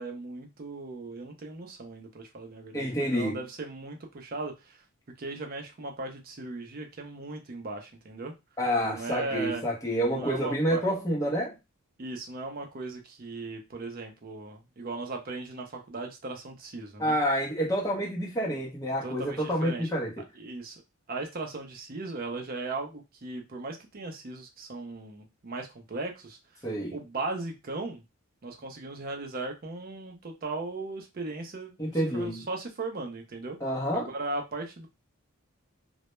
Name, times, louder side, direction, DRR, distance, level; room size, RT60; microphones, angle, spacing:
voice 1, 0.0-4.8 5.2-8.3 8.9-9.6 10.1-10.8 12.0-17.2 19.0-19.9 20.3-20.8 21.1-26.4 26.9-28.0 28.4-33.6 33.9-34.9, right 3 dB, 40° right, 0.5 m, -37 dB
voice 2, 2.7-3.4 8.6-11.5 17.0-20.1 26.6-27.0 31.8-32.4 33.6-34.1, equal, 15° left, 0.6 m, -28 dB
2.1 x 2.0 x 3.0 m
head